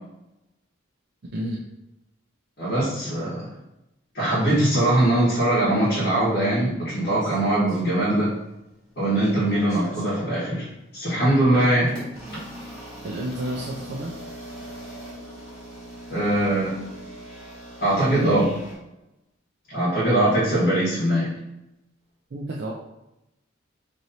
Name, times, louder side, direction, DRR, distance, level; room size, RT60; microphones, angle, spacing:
voice 1, 1.3-1.6 13.0-14.1 22.3-22.7, right 1 dB, 55° right, -2 dB, 0.4 m, -30 dB
voice 2, 2.6-3.5 4.1-8.3 9.0-10.7 10.9-11.9 16.1-16.8 17.8-18.5 19.7-21.3, right 1 dB, 50° left, -12 dB, 1.4 m, -21 dB
sound 1, 7.0-8.5 8.8-10.2 10.9-11.1 11.9-18.7, right 1 dB, 5° left, 1.2 m, -41 dB
3.1 x 2.6 x 4.1 m, 0.91 s
head